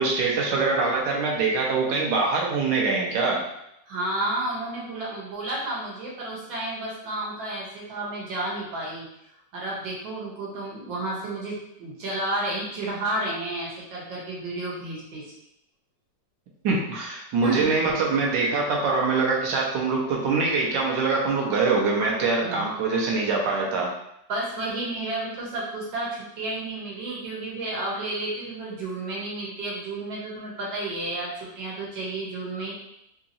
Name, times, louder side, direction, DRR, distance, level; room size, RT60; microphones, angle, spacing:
voice 1, 0.0-3.4 16.6-23.9, right 4 dB, 75° right, -2 dB, 1.4 m, -24 dB
voice 2, 3.9-9.1 9.5-15.2 17.4-17.7 22.4-22.7 24.3-32.7, right 2 dB, 90° right, -4 dB, 1.9 m, -31 dB
3.7 x 2.9 x 2.6 m, 0.79 s
omnidirectional pair, 2.0 m